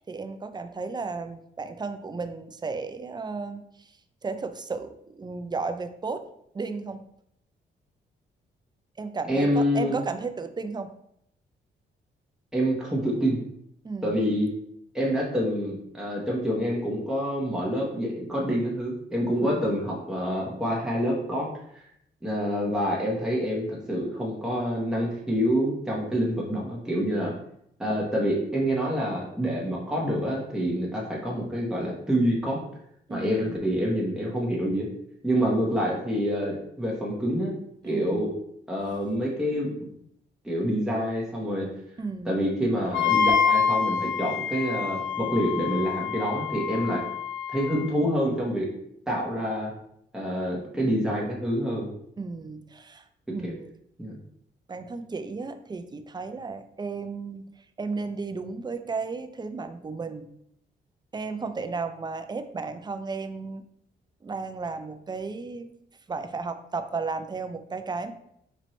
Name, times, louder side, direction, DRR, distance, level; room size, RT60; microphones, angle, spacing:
voice 1, 0.0-4.0 4.2-6.3 6.5-7.0 9.0-10.9 13.8-14.3 19.4-19.7 33.1-33.6 37.9-38.4 42.0-42.4 52.2-53.1 53.3-53.7 54.7-57.5 57.8-60.3 61.1-63.7 64.2-65.7 66.1-68.1, right 4 dB, 20° right, 9 dB, 0.4 m, -34 dB
voice 2, 9.3-10.0 12.5-13.4 14.0-14.5 14.9-21.5 21.7-21.8 22.2-27.3 27.8-32.6 33.1-34.9 35.2-37.5 37.8-38.3 38.7-39.7 40.4-41.7 42.3-47.0 47.5-48.7 49.1-49.7 50.1-51.9 53.4-53.5 54.0-54.2, equal, 5° right, -4 dB, 1.1 m, -27 dB
Wind instrument woodwind instrument, 42.9-47.9, left 6 dB, 65° left, 0.5 m, -26 dB
4.3 x 2.6 x 3.1 m, 0.74 s
cardioid pair, 75°, 20 cm